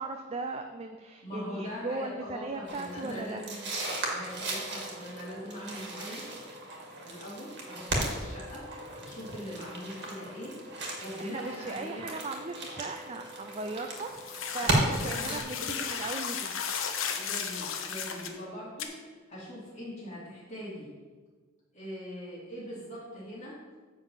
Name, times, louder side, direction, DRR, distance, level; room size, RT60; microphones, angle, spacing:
voice 1, 0.0-3.4 11.2-16.6, right 3 dB, 30° right, 5 dB, 0.4 m, -38 dB
voice 2, 1.2-3.7 4.1-6.3 7.0-8.7 9.0-10.6 11.0-12.0 14.6-15.9 17.1-20.9 21.7-23.6, equal, 35° left, -8 dB, 2.9 m, -42 dB
sound 1, 2.7-15.4, right 1 dB, 55° right, 1.9 m, -35 dB
sound 2, 14.0-18.4 18.8-18.9, left 7 dB, 65° left, 0.9 m, -35 dB
10.0 x 4.0 x 7.3 m, 1.4 s
head